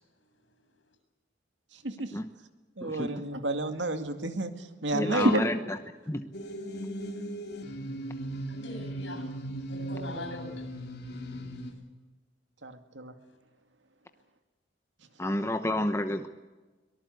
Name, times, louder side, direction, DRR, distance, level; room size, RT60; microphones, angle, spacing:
voice 1, 1.7-2.1 2.8-5.4 12.6-13.1, right 2 dB, 70° right, 7 dB, 2.2 m, -30 dB
voice 2, 4.9-5.6 6.1-6.2 15.2-16.3, left 1 dB, 15° left, 7 dB, 0.9 m, -29 dB
sound 1, 6.3-11.7, right 1 dB, 55° left, 3.6 m, -38 dB
voice 3, 8.5-9.3 9.7-10.6, left 2 dB, 75° left, 8 dB, 7.4 m, -40 dB
24.0 x 18.5 x 8.2 m, 1.2 s
head